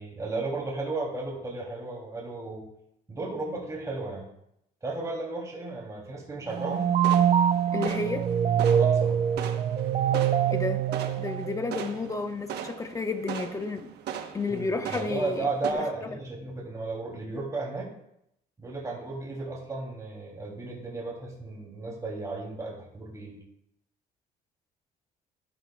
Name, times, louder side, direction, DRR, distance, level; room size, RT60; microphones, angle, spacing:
voice 1, 0.0-2.6 3.1-4.3 4.8-6.9 8.7-9.2 14.5-17.9 18.6-23.4, right 3 dB, 20° right, 3.0 m, -34 dB
sound 1, 6.5-12.0, right 9 dB, 35° right, 0.6 m, -24 dB
sound 2, 6.5-15.7, right 8 dB, 80° right, 1.1 m, -39 dB
voice 2, 7.7-8.3 10.5-10.9 11.2-13.9 14.3-16.1, left 3 dB, 20° left, 1.0 m, -32 dB
12.0 x 12.0 x 2.4 m
cardioid pair, 110°, 17 cm